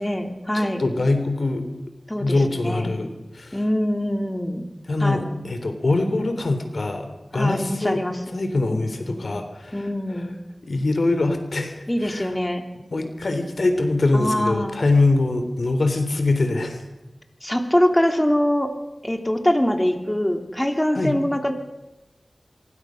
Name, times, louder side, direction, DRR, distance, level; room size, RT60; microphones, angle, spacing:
voice 1, 0.0-0.8 2.1-2.8 3.5-4.7 5.0-5.2 7.3-8.2 9.0-9.3 9.7-10.4 11.9-12.6 14.1-14.8 17.4-18.7 19.0-21.5, left 1 dB, 15° left, 5 dB, 3.0 m, -23 dB
voice 2, 0.5-1.7 2.2-3.6 4.9-8.0 8.3-10.2 10.7-12.3 12.9-16.8 20.9-21.2, left 2 dB, 75° left, 8 dB, 3.5 m, -23 dB
25.5 x 23.5 x 6.5 m, 1.0 s
wide cardioid pair, 50°, 0 cm